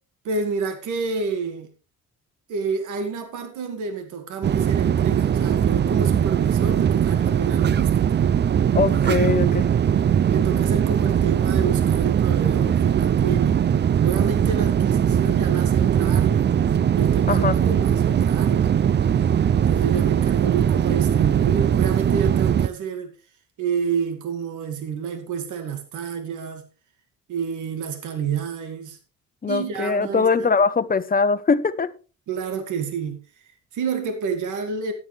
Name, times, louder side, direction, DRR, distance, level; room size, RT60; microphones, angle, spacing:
voice 1, 0.2-1.7 2.5-8.3 9.2-9.6 10.3-13.6 14.0-16.5 16.9-18.8 19.7-23.1 23.6-26.7 27.3-29.0 29.5-30.5 32.3-34.9, right 6 dB, 80° right, 2.1 m, -29 dB
sound 1, 4.4-22.7, right 9 dB, 35° right, 0.5 m, -20 dB
voice 2, 8.7-9.7 17.3-17.6 29.4-31.9, left 5 dB, 30° left, 1.0 m, -21 dB
13.5 x 11.0 x 3.4 m
cardioid pair, 90°, 30 cm